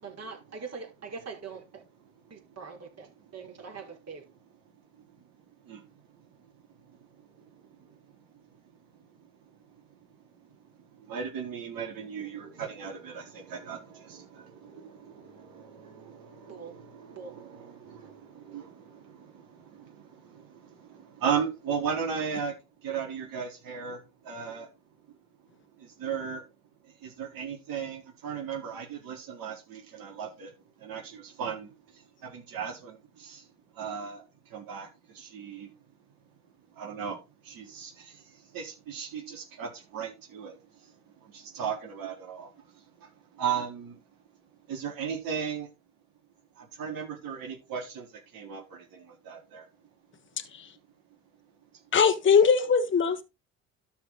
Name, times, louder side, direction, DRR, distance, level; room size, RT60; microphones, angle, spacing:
voice 1, 0.0-1.8 2.3-3.1 3.3-4.2 16.5-16.7 17.1-17.4, right 5 dB, 40° right, 5.0 m, -42 dB
voice 2, 4.9-5.3 5.6-6.0 6.4-6.5 6.8-8.4 9.1-9.3 9.7-9.8 10.7-22.5 22.8-24.7 25.1-25.2 25.8-26.4 26.8-30.5 30.8-33.5 33.7-35.7 36.7-37.2 37.4-44.0 44.7-45.7 46.6-48.1 48.3-49.7, right 7 dB, 60° right, 4.1 m, -37 dB
voice 3, 51.9-53.2, left 6 dB, 30° left, 1.4 m, -21 dB
12.5 x 5.3 x 4.1 m
hypercardioid pair, 60°, 38 cm